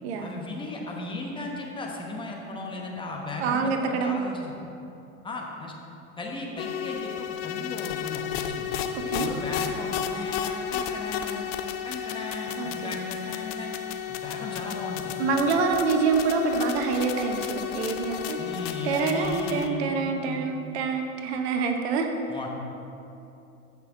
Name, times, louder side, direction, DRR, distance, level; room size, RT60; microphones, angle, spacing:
voice 1, 0.2-4.6 5.2-5.7 6.2-8.7 9.2-11.4 11.8-13.7 14.1-15.2 18.4-19.9 20.2-20.4 22.3-22.5, left 2 dB, 10° left, -1 dB, 1.3 m, -36 dB
voice 2, 3.4-4.2 9.1-9.3 12.6-12.9 15.2-18.4 18.8-22.1, right 4 dB, 50° right, 5 dB, 0.9 m, -26 dB
sound 1, 6.6-19.7, left 9 dB, 45° left, 0.7 m, -32 dB
15.0 x 6.1 x 3.8 m, 2.8 s
figure-of-eight pair, 90°, 42 cm